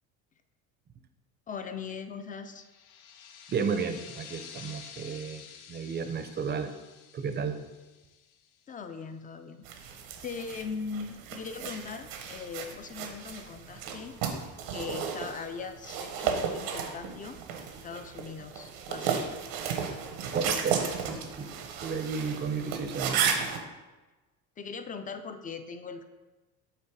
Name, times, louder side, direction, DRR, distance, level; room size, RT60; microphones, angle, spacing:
voice 1, 1.5-2.7 8.7-14.2 14.7-17.4 17.8-19.3 24.6-26.0, left 5 dB, 20° left, 9 dB, 0.4 m, -40 dB
sound 1, 2.6-8.9, left 8 dB, 90° left, 0.7 m, -50 dB
voice 2, 3.5-6.7 7.1-7.6 20.3-21.5 21.8-23.3, right 5 dB, 25° right, 9 dB, 0.5 m, -33 dB
sound 2, 9.6-23.6, right 7 dB, 85° right, 1.1 m, -34 dB
8.2 x 3.1 x 4.7 m, 1.2 s
supercardioid pair, 115°, 39 cm